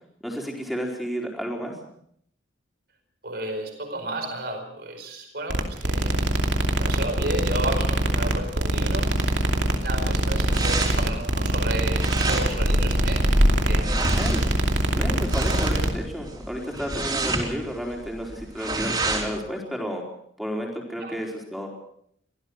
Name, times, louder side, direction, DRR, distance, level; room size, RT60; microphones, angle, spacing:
voice 1, 0.2-1.7 14.1-14.4 14.9-20.0 20.4-21.7, equal, ahead, 0 dB, 4.3 m, -31 dB
voice 2, 3.2-9.1 9.7-14.1 21.0-21.2, right 1 dB, 55° right, 4 dB, 5.0 m, -33 dB
sound 1, 5.5-15.9, right 1 dB, 75° right, 2.7 m, -24 dB
sound 2, 9.2-19.4, right 1 dB, 25° right, 4.3 m, -27 dB
24.5 x 16.5 x 6.4 m, 0.68 s
head